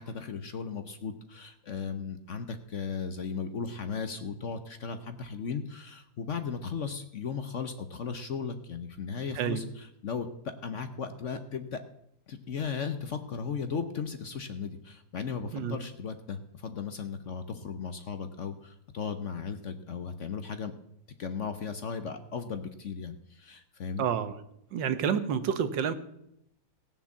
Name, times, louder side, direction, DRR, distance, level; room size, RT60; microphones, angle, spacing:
voice 1, 0.0-11.8 12.3-20.7 21.2-24.1, left 6 dB, 55° left, 9 dB, 1.0 m, -36 dB
voice 2, 24.0-24.3 24.7-25.9, right 8 dB, 80° right, 11 dB, 1.7 m, -29 dB
17.5 x 7.3 x 7.2 m, 0.78 s
omnidirectional pair, 2.0 m